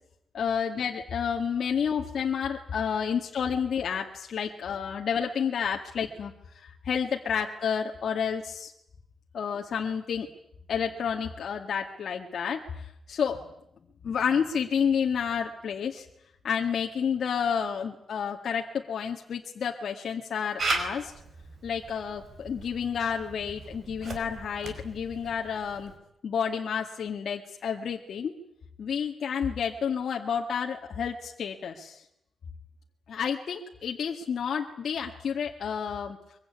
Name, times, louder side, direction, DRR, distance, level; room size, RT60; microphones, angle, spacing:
voice 1, 0.4-8.7 9.3-10.3 10.7-13.4 14.0-16.1 16.4-21.1 21.6-25.9 26.2-28.3 28.8-32.0 33.1-36.2, left 7 dB, 60° left, 1 dB, 1.9 m, -30 dB
Camera, 20.6-26.0, right 3 dB, 45° right, 5.0 m, -37 dB
23.5 x 23.5 x 9.7 m, 0.79 s
wide cardioid pair, 150°, 0 cm